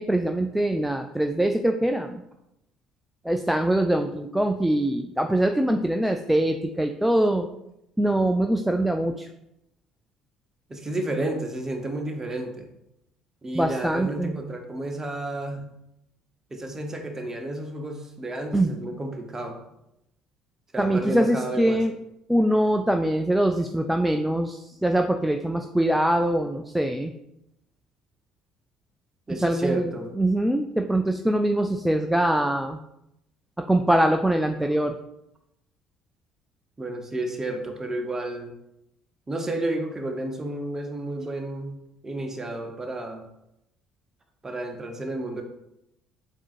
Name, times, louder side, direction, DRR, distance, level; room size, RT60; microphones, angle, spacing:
voice 1, 0.0-2.2 3.2-7.5 8.0-9.3 13.5-14.4 18.5-18.7 20.8-21.9 22.3-27.1 29.4-29.9 30.2-32.8 33.6-35.0, right 1 dB, 5° right, 5 dB, 0.3 m, -23 dB
voice 2, 10.7-12.7 13.4-15.6 16.5-19.6 20.7-21.8 29.3-30.1 36.8-38.5 39.3-41.7 42.0-43.2 44.4-45.4, right 1 dB, 20° right, 4 dB, 0.8 m, -31 dB
7.1 x 2.6 x 2.5 m, 0.83 s
figure-of-eight pair, 55°, 2 cm